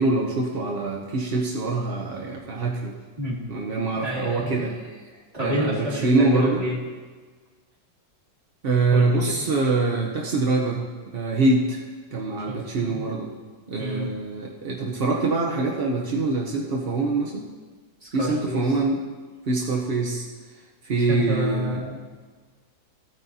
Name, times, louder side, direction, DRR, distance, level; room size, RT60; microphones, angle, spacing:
voice 1, 0.0-2.9 3.5-4.8 5.4-6.6 8.6-10.9 11.1-11.8 12.1-13.3 13.7-17.5 18.1-19.0 19.5-20.3 20.8-21.8, right 3 dB, 55° right, -2 dB, 0.6 m, -24 dB
voice 2, 3.2-3.5 3.9-4.7 5.1-6.8 8.9-9.4 12.5-13.0 13.8-14.1 18.0-18.6 21.1-22.1, left 1 dB, 20° right, -6 dB, 2.3 m, -29 dB
15.5 x 9.4 x 2.7 m, 1.4 s
omnidirectional pair, 2.1 m